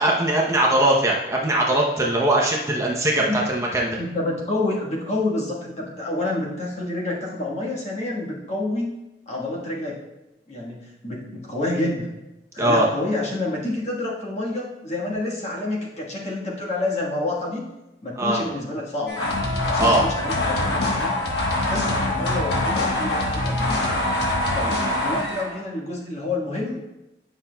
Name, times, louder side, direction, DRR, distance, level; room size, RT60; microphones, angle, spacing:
voice 1, 0.0-3.9 12.6-12.9 18.2-18.4 19.8-20.0, right 1 dB, 15° right, -2 dB, 0.7 m, -20 dB
voice 2, 3.1-3.5 4.0-8.9 9.3-10.0 10.5-12.1 12.5-17.7 18.0-19.2 19.7-21.2 21.6-23.7 24.5-27.0, left 2 dB, 40° left, -4 dB, 1.4 m, -28 dB
sound 1, 19.1-25.6, left 1 dB, 80° left, 1.1 m, -24 dB
9.1 x 5.7 x 2.2 m, 0.98 s
head